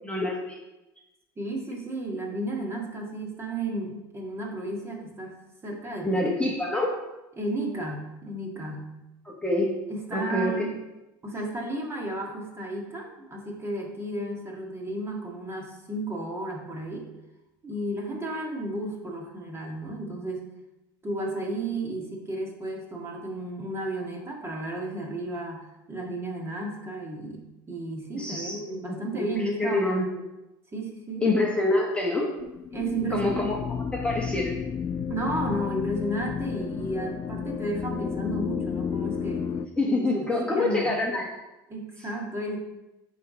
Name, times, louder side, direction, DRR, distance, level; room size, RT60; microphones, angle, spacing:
voice 1, 0.0-0.6 6.0-7.0 9.2-9.7 10.1-10.7 28.1-28.6 28.9-29.3 29.6-30.1 31.2-32.3 33.1-34.6 39.8-41.2, left 2 dB, 10° left, -2 dB, 1.2 m, -26 dB
voice 2, 1.4-5.4 5.6-6.2 7.4-8.9 9.9-10.8 11.2-17.1 17.6-20.5 21.0-27.4 27.7-29.9 30.7-31.2 32.7-33.3 33.7-33.9 35.1-39.5 40.1-40.9 41.7-42.6, right 1 dB, 20° right, -1 dB, 1.8 m, -33 dB
sound 1, 32.4-39.7, left 7 dB, 35° left, 0.4 m, -32 dB
8.3 x 3.5 x 5.1 m, 0.98 s
supercardioid pair, 95°, 12 cm